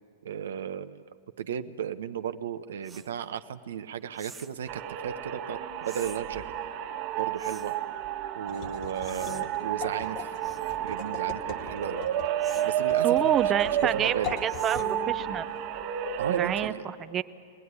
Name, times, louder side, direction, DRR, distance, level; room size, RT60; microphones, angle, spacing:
voice 1, 0.2-1.0 1.4-6.4 7.2-7.7 8.4-10.3 10.8-12.0 12.6-13.3 13.9-14.4 16.2-16.8, right 9 dB, 75° right, 10 dB, 0.8 m, -35 dB
sound 1, 2.8-3.1 4.1-4.6 5.8-6.2 7.4-7.8 9.0-9.4 10.4-10.8 12.4-12.7 14.5-15.0, right 4 dB, 10° right, 1.1 m, -47 dB
sound 2, 4.7-16.7, right 11 dB, 50° right, 1.6 m, -31 dB
sound 3, 8.5-16.4, left 8 dB, 50° left, 1.2 m, -42 dB
voice 2, 13.0-14.1 14.4-15.4 16.3-17.2, right 9 dB, 30° right, 13 dB, 0.7 m, -28 dB
22.5 x 18.5 x 9.7 m, 2.3 s
hypercardioid pair, 115°, 0 cm